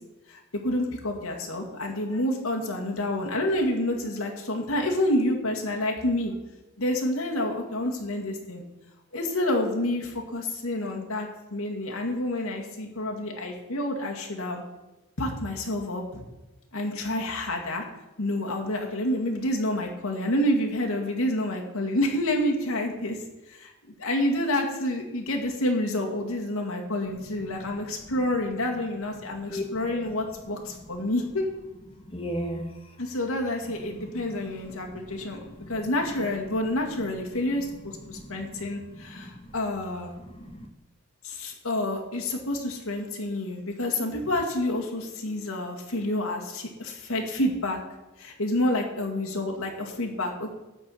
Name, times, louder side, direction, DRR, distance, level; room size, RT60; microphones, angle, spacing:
voice 1, 0.3-6.3 6.8-8.6 9.1-14.6 15.2-16.2 16.7-17.9 18.2-23.2 23.5-23.7 24.0-31.5 33.0-35.4 35.7-40.1 41.2-47.8 48.2-50.5, left 1 dB, 80° left, 1 dB, 2.1 m, -28 dB
voice 2, 29.2-30.1 31.0-31.1 31.9-33.0 33.8-35.9 38.0-38.6 38.9-39.5 40.2-40.7, equal, 25° left, 4 dB, 1.4 m, -38 dB
12.0 x 4.6 x 8.5 m, 1.0 s
head